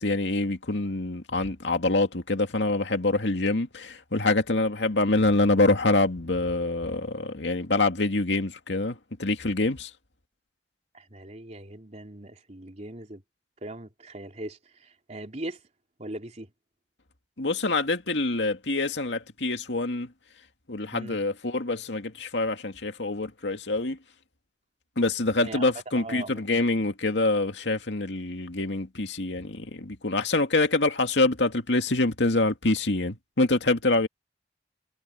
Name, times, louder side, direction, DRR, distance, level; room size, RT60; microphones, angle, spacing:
voice 1, 0.0-9.9 17.4-20.1 20.7-24.0 25.0-34.1, left 2 dB, 90° left, 2.2 m, -25 dB
voice 2, 10.9-13.2 13.6-15.6 16.0-16.5 20.9-21.2 25.4-25.6 25.9-26.5, right 1 dB, 40° right, 3.5 m, -40 dB
head